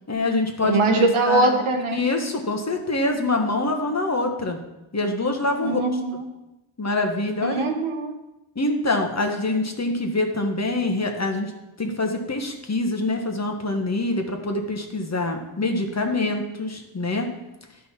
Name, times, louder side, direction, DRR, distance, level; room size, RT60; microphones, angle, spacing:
voice 1, 0.1-1.6 1.9-4.6 4.9-5.9 6.8-7.7 8.5-11.5 11.8-17.3, left 2 dB, 35° left, 3 dB, 1.3 m, -25 dB
voice 2, 0.6-2.0 5.6-6.2 7.4-8.1, right 2 dB, 80° right, 4 dB, 1.2 m, -22 dB
11.0 x 5.4 x 4.3 m, 0.97 s
wide cardioid pair, 75°, 48 cm